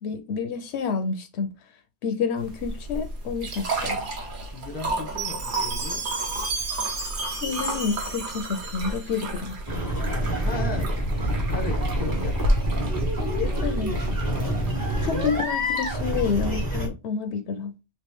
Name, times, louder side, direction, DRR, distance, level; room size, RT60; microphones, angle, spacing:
voice 1, 0.0-1.5 2.0-4.1 7.4-9.5 13.2-13.9 15.0-17.7, left 6 dB, 70° left, 0.8 m, -29 dB
sound 1, 2.4-16.6, right 1 dB, 50° right, 0.9 m, -33 dB
voice 2, 4.5-6.1 10.0-12.4 13.8-15.3, left 3 dB, 10° left, 0.7 m, -36 dB
Chime, 5.2-9.3, right 3 dB, 85° right, 1.3 m, -33 dB
sound 2, 9.7-16.9, equal, 20° right, 0.9 m, -27 dB
3.1 x 2.7 x 3.4 m
omnidirectional pair, 1.2 m